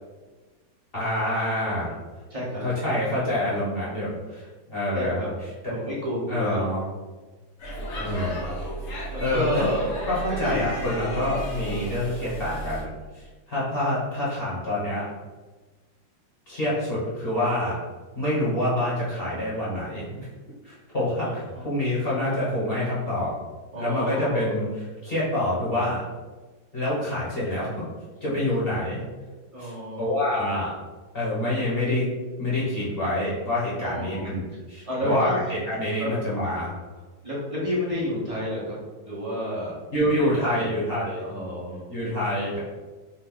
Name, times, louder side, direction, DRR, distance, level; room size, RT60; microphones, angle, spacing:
voice 1, 0.9-1.9 2.6-5.2 6.3-6.8 7.9-8.4 9.2-9.6 10.0-12.9 13.5-15.0 16.5-17.8 18.1-20.3 20.6-23.3 23.7-26.0 26.7-27.7 28.2-29.0 29.6-29.7 30.0-30.7 31.1-32.1 32.4-36.7 39.9-41.3 41.9-42.6, left 1 dB, 35° left, -8 dB, 1.3 m, -26 dB
voice 2, 2.3-2.6 4.9-5.3 5.7-6.6 9.1-9.9 10.3-10.7 21.2-21.7 23.7-24.5 29.5-30.5 33.8-34.3 34.9-35.4 36.0-36.1 37.2-38.8 39.0-40.3 40.6-40.7 41.2-41.8, left 1 dB, 25° right, -7 dB, 0.8 m, -30 dB
Speech / Shout / Subway metro underground, 7.6-12.8, right 1 dB, 55° left, 0.8 m, -33 dB
4.2 x 2.6 x 3.8 m, 1.3 s
omnidirectional pair, 2.1 m